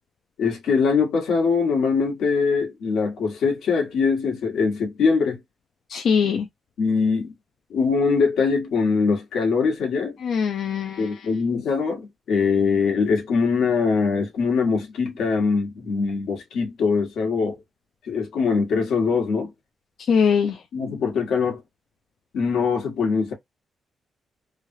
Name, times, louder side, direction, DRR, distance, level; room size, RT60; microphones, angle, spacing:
voice 1, 0.4-5.4 6.8-7.3 7.7-10.2 11.0-17.6 18.0-19.5 20.7-21.6 22.3-23.3, left 5 dB, 85° left, 1.5 m, -22 dB
voice 2, 5.9-6.5 10.2-11.1 20.1-20.5, left 6 dB, 65° left, 0.5 m, -21 dB
3.2 x 2.4 x 2.6 m
cardioid pair, 140°, 0 cm